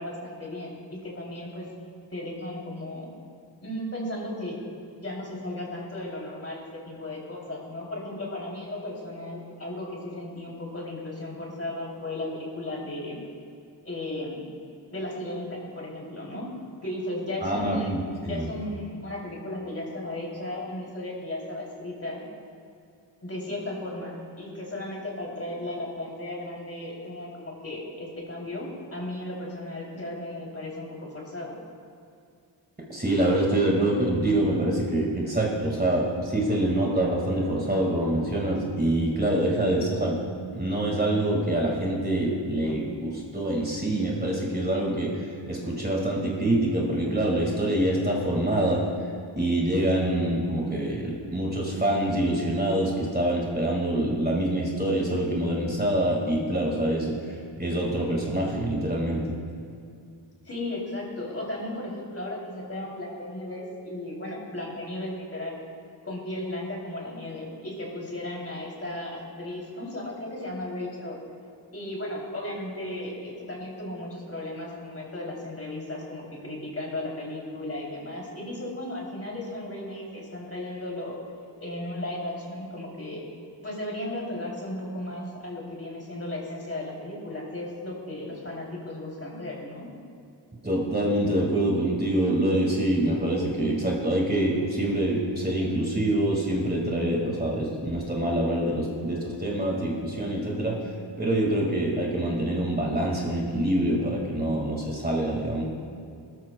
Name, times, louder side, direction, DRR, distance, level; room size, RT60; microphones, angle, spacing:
voice 1, 0.0-1.7 2.1-3.1 3.6-4.7 5.0-13.2 13.8-14.5 14.9-16.5 16.8-18.0 18.3-22.2 23.2-31.6 60.4-65.6 66.0-71.2 71.7-81.2 81.6-83.2 83.6-89.9, left 1 dB, 30° left, -3 dB, 3.1 m, -35 dB
voice 2, 17.4-18.5 32.9-40.2 40.5-48.8 49.4-59.3 90.6-100.8 101.2-105.6, right 1 dB, 20° right, -2 dB, 1.9 m, -25 dB
19.0 x 13.0 x 2.3 m, 2.4 s
wide cardioid pair, 105°, 47 cm